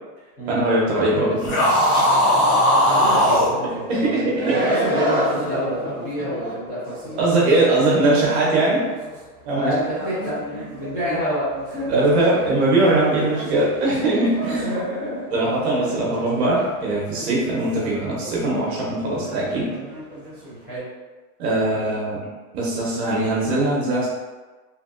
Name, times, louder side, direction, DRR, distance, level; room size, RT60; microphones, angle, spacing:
voice 1, 0.5-1.6 1.9-2.2 3.9-4.6 7.2-8.9 9.4-9.7 11.9-14.7 15.3-19.7 21.4-22.2 22.5-24.1, right 2 dB, 45° right, -4 dB, 0.7 m, -21 dB
sound 1, 1.4-3.5, equal, 70° left, 1.0 m, -17 dB
sound 2, 1.4-20.8, equal, 10° right, 0.3 m, -33 dB
voice 2, 2.8-8.0 9.5-11.9 14.4-15.2 15.9-16.0 20.5-20.9 21.7-21.9, equal, 25° left, -9 dB, 0.8 m, -28 dB
2.9 x 2.6 x 2.4 m, 1.3 s
supercardioid pair, 175°, 45 cm